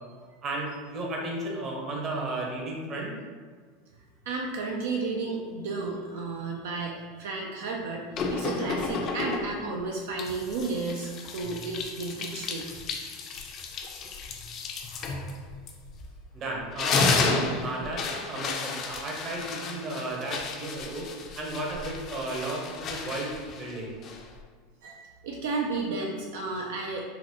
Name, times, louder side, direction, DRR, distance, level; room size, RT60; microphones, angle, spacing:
voice 1, 0.4-3.2 16.3-21.1 21.3-23.9, right 2 dB, 40° right, -1 dB, 0.8 m, -34 dB
voice 2, 4.3-12.7 19.3-19.4 19.7-19.8 24.8-27.0, right 3 dB, 75° right, 0 dB, 0.3 m, -33 dB
sound 1, 8.1-9.7 10.2-16.2 16.6-24.4, left 4 dB, 45° left, 0.4 m, -32 dB
3.9 x 2.0 x 2.9 m, 1.5 s
hypercardioid pair, 100°, 0 cm